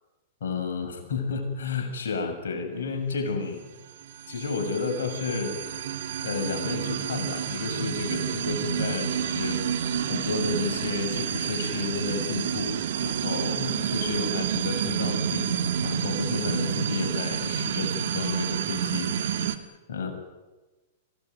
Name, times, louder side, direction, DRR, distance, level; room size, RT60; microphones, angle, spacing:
voice 1, 0.4-3.6 4.3-5.8 6.2-19.6 19.9-20.1, left 4 dB, 75° left, 3 dB, 7.0 m, -31 dB
sound 1, 3.9-19.6, right 8 dB, 65° right, 2.0 m, -29 dB
26.0 x 18.0 x 9.7 m, 1.2 s
hypercardioid pair, 110°, 0 cm